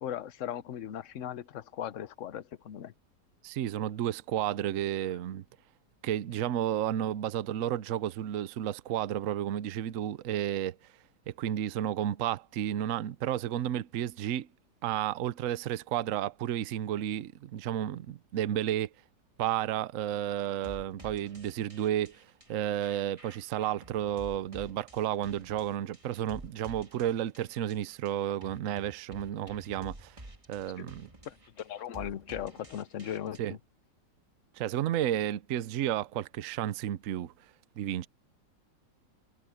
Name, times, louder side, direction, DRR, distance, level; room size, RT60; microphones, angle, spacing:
voice 1, 0.0-2.9 30.7-30.9 31.2-33.6, left 10 dB, 55° left, 0.9 m, -38 dB
voice 2, 3.4-5.4 6.0-10.8 11.3-14.5 14.8-18.9 19.4-22.2 22.5-30.2 30.5-31.1 33.4-33.6 34.6-37.3 37.8-38.1, right 11 dB, 60° right, 0.9 m, -32 dB
sound 1, 20.4-33.4, right 1 dB, 20° right, 2.0 m, -50 dB
omnidirectional pair, 1.9 m